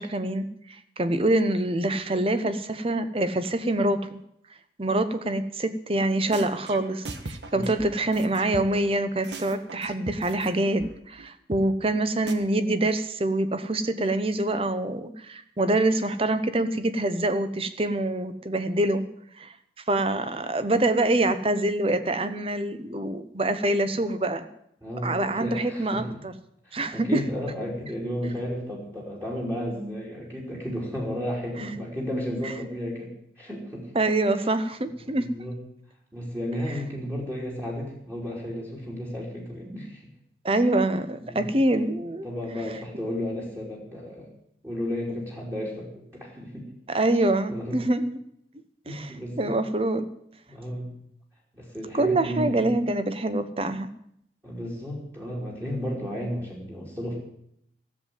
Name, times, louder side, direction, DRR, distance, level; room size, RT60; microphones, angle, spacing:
voice 1, 0.0-4.2 4.8-19.1 19.3-19.5 19.9-24.5 25.0-26.3 26.7-27.2 33.9-35.3 40.4-42.3 46.9-48.2 48.9-50.1 51.9-53.9, right 2 dB, 30° right, 11 dB, 1.0 m, -25 dB
sound 1, 6.0-6.1 6.3-8.9 9.2-10.5 10.8-10.9 11.2-11.3 11.5-11.6 11.9-12.0 12.3-12.4, right 3 dB, 85° right, 1.4 m, -38 dB
voice 2, 24.8-26.2 26.6-33.9 34.4-34.5 35.0-35.6 36.1-40.1 41.2-41.8 42.2-44.3 44.6-46.7 47.5-47.8 48.8-49.6 50.5-50.9 51.5-52.7 54.4-57.2, equal, 15° right, -3 dB, 3.2 m, -33 dB
14.0 x 7.6 x 9.3 m, 0.72 s
head